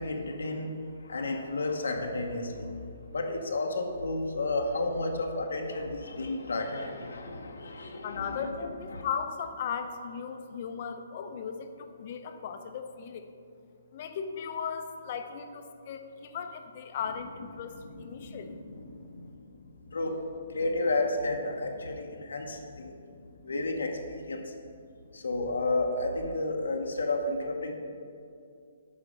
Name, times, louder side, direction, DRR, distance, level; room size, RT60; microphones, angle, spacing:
voice 1, 0.0-2.8 3.1-8.6 8.9-9.0 17.6-22.9 23.4-24.5 25.1-27.7, left 2 dB, 85° left, 3 dB, 1.0 m, -32 dB
voice 2, 8.0-13.3 13.9-18.5, left 6 dB, 45° left, 7 dB, 0.7 m, -37 dB
7.5 x 5.0 x 6.5 m, 2.5 s
hypercardioid pair, 150°, 0 cm